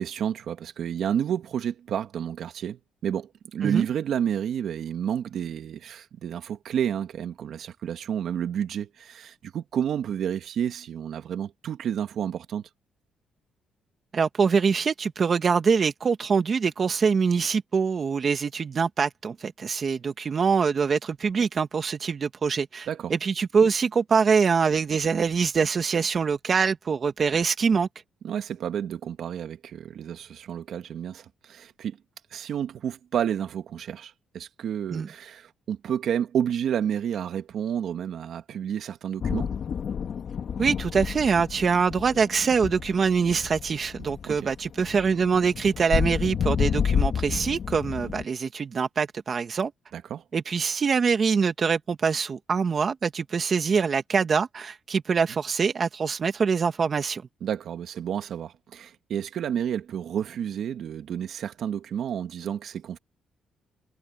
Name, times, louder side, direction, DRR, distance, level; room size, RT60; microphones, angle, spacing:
voice 1, 0.0-12.7 22.9-23.1 28.2-32.0 32.3-39.5 44.3-44.4 49.9-50.2 57.4-63.0, right 9 dB, 65° right, 2.1 m, -30 dB
voice 2, 14.1-27.9 34.9-35.1 40.6-49.7 50.3-57.2, right 5 dB, 45° right, 1.6 m, -24 dB
sound 1, 39.2-48.2, left 7 dB, 55° left, 2.0 m, -30 dB
cardioid pair, 90°, 0 cm